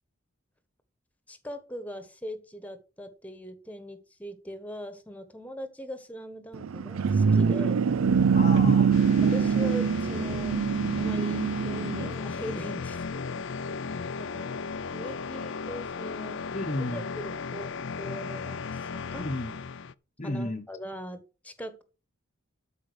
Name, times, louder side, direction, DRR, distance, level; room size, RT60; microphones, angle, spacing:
voice 1, 1.3-7.8 9.3-10.6 11.0-13.7 14.2-16.4 16.9-17.7 18.0-19.3 20.2-21.8, equal, 5° left, 1.4 m, -41 dB
sound 1, 6.5-12.1, right 6 dB, 80° right, 0.5 m, -24 dB
voice 2, 8.3-8.9 16.5-17.1 19.2-19.6 20.2-20.7, left 1 dB, 35° left, 1.0 m, -32 dB
sound 2, 8.9-19.9, left 5 dB, 60° left, 0.5 m, -35 dB
12.5 x 5.2 x 6.5 m
head